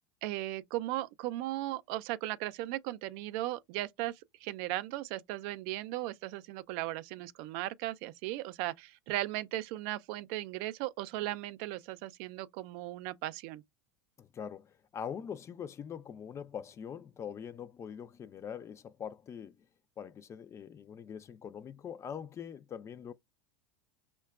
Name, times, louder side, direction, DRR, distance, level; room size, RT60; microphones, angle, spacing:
voice 1, 0.2-13.6, right 16 dB, 55° right, 0.4 m, -37 dB
voice 2, 14.2-19.6 20.0-23.1, left 8 dB, 25° left, 0.3 m, -43 dB
5.5 x 2.2 x 2.3 m
hypercardioid pair, 105°, 11 cm